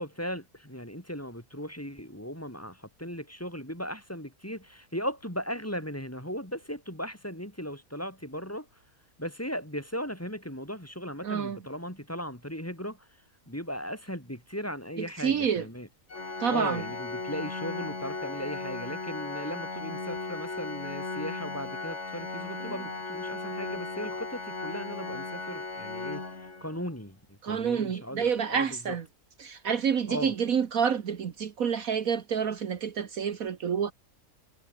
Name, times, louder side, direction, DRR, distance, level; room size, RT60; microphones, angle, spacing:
voice 1, 0.0-8.7 9.2-13.1 13.5-15.9 16.2-28.9 30.1-30.3, equal, 10° left, 4.8 m, -37 dB
voice 2, 11.2-11.6 15.2-15.7 16.4-16.8 27.4-29.0 29.4-33.9, right 7 dB, 65° right, 1.6 m, -28 dB
Organ, 16.1-26.9, left 3 dB, 50° left, 3.5 m, -36 dB
omnidirectional pair, 1.6 m